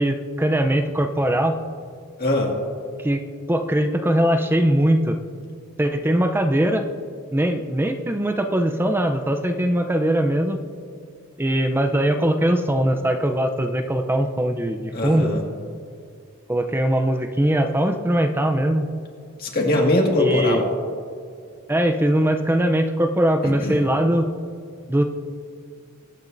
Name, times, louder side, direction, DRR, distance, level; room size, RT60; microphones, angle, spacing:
voice 1, 0.0-1.6 3.0-3.2 3.5-5.2 5.8-6.9 7.3-10.6 11.4-15.3 16.5-18.9 20.2-20.6 21.7-24.3 24.9-25.0, right 1 dB, 10° right, 6 dB, 0.6 m, -21 dB
voice 2, 2.2-2.5 14.9-15.4 19.4-20.7 23.4-23.8, left 1 dB, 45° left, -1 dB, 2.0 m, -21 dB
22.5 x 8.8 x 2.6 m, 2.2 s
head